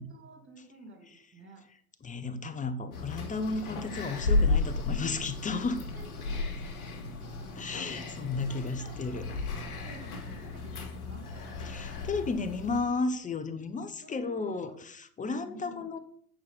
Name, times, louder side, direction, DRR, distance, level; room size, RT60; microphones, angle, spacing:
voice 1, 0.0-1.7 5.6-6.6 8.5-9.3 9.6-11.9 12.5-12.6 14.0-14.8 15.3-15.9, right 2 dB, 25° right, 2.4 m, -52 dB
voice 2, 2.0-5.8 7.6-9.3 11.6-16.0, left 3 dB, 15° left, 0.9 m, -33 dB
sound 1, 2.9-12.8, left 3 dB, 70° left, 2.3 m, -33 dB
8.8 x 4.7 x 5.6 m
hypercardioid pair, 85°, 45 cm